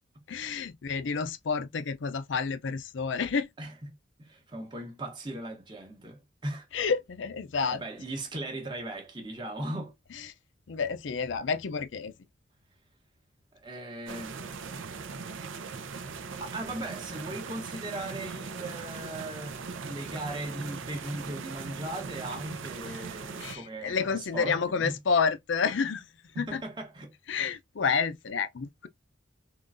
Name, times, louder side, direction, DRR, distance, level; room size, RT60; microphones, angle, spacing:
voice 1, 0.3-3.5 6.7-7.8 10.1-10.3 10.7-12.1 22.9-23.0 23.4-26.1 26.4-26.6 27.3-28.9, left 5 dB, 75° left, 0.5 m, -29 dB
voice 2, 4.2-6.7 7.7-9.9 13.6-14.4 16.4-25.0 26.3-27.1, right 1 dB, 25° right, 0.9 m, -38 dB
sound 1, 14.1-23.6, right 5 dB, 85° right, 0.6 m, -40 dB
3.8 x 3.1 x 2.5 m
head